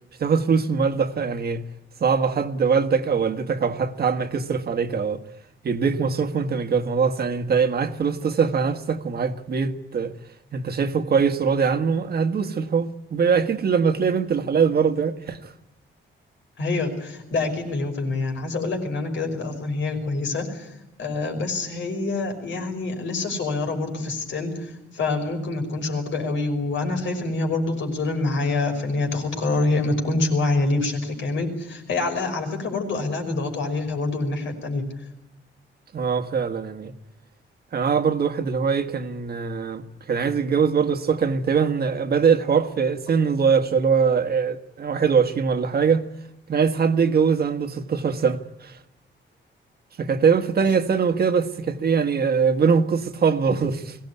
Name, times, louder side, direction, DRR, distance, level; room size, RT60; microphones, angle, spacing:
voice 1, 0.2-1.6 2.0-5.2 5.6-10.1 10.5-15.5 35.9-36.9 37.7-39.8 40.1-46.1 46.5-48.8 50.0-54.0, right 6 dB, 50° right, 1.5 m, -22 dB
voice 2, 16.6-20.7 21.0-34.9, left 3 dB, 70° left, 5.6 m, -26 dB
22.5 x 18.0 x 9.6 m
wide cardioid pair, 155°, 20 cm